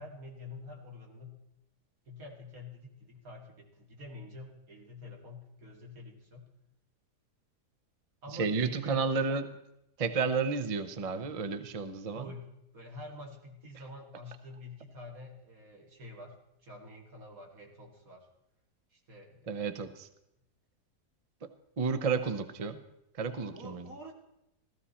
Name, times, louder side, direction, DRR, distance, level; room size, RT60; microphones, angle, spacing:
voice 1, 0.0-1.4 2.1-6.5 8.2-9.1 12.1-18.3 18.9-19.7 23.5-24.1, left 2 dB, 60° right, -1 dB, 2.8 m, -48 dB
voice 2, 8.3-9.5 10.0-12.3 19.5-20.1 21.8-22.8 23.2-23.8, right 5 dB, 40° right, 9 dB, 0.5 m, -31 dB
15.5 x 14.0 x 4.3 m, 0.84 s
omnidirectional pair, 1.7 m